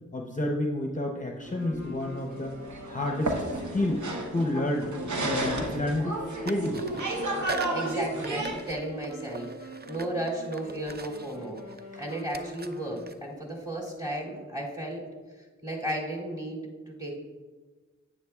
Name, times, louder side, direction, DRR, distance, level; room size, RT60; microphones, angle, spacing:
voice 1, 0.1-2.5 2.9-3.4 3.7-4.0 4.3-4.9 5.2-6.8 11.9-12.0, left 1 dB, 25° left, 1 dB, 0.7 m, -30 dB
sound 1, 1.4-8.7, right 2 dB, 80° right, 0.9 m, -33 dB
sound 2, 1.5-13.3, right 1 dB, 60° right, 1.9 m, -44 dB
sound 3, 2.3-2.5 3.9-5.2 5.4-6.2 6.4-14.2, right 4 dB, 35° right, 0.5 m, -44 dB
voice 2, 7.5-11.6 12.0-15.1 15.6-17.1, right 1 dB, 15° right, -4 dB, 2.7 m, -34 dB
9.7 x 8.8 x 2.3 m, 1.3 s
wide cardioid pair, 40°, 29 cm